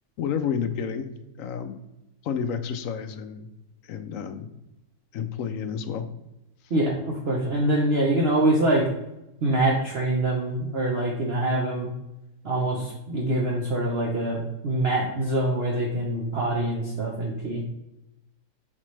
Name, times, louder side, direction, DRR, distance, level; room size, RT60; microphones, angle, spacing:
voice 1, 0.2-1.1 1.4-1.8 2.2-3.5 3.8-4.5 5.1-6.1, left 7 dB, 70° left, 9 dB, 0.9 m, -30 dB
voice 2, 6.7-8.8 9.4-11.9 12.4-17.6, right 1 dB, 45° right, -2 dB, 1.0 m, -24 dB
7.4 x 4.2 x 3.2 m, 0.90 s
omnidirectional pair, 1.6 m